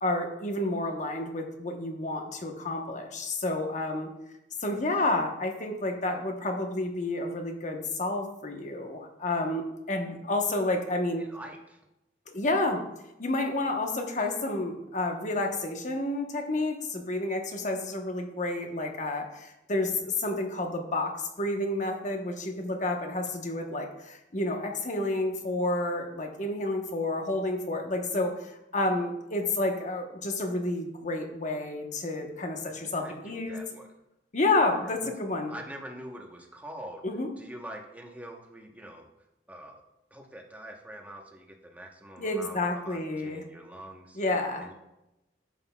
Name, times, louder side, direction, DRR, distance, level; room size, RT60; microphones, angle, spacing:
voice 1, 0.0-4.1 4.6-11.2 12.3-12.8 13.2-33.6 34.3-35.5 37.0-37.3 42.2-43.4 44.1-44.7, left 2 dB, 45° left, 4 dB, 1.1 m, -30 dB
voice 2, 11.2-11.8 32.8-33.9 34.8-35.1 35.5-37.0 37.4-39.1 39.5-39.8 40.1-44.2 44.6-44.7, right 1 dB, 10° right, 1 dB, 1.0 m, -45 dB
11.0 x 7.8 x 2.3 m, 0.91 s
head